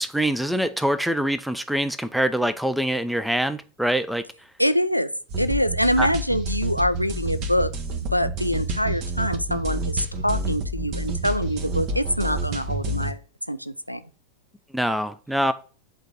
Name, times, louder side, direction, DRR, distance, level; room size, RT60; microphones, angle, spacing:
voice 1, 0.0-4.2 6.0-6.1 14.7-15.5, right 1 dB, ahead, 0.7 m, -24 dB
voice 2, 4.6-5.1 5.4-7.7 8.1-13.2 13.5-14.0, equal, 90° left, 0.5 m, -24 dB
sound 1, 5.3-13.1, right 2 dB, 40° right, 1.3 m, -29 dB
8.3 x 3.8 x 6.4 m
figure-of-eight pair, 90°, 0 cm